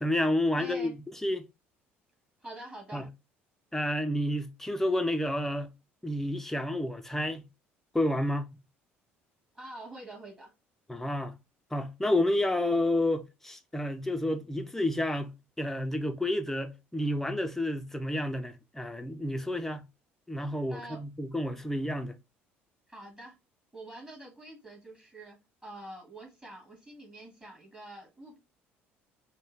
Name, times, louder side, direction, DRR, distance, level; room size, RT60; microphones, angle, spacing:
voice 1, 0.0-1.5 2.9-3.1 3.7-5.7 6.0-7.5 7.9-8.5 10.9-11.3 11.7-15.3 15.6-19.8 20.3-22.2, left 1 dB, 5° left, 0.6 m, -30 dB
voice 2, 0.6-0.9 2.4-3.1 9.6-10.5 20.7-21.0 22.9-23.4 23.7-25.4 25.6-28.4, right 1 dB, 15° right, 2.1 m, -46 dB
4.3 x 2.3 x 3.3 m
figure-of-eight pair, 55°, 6 cm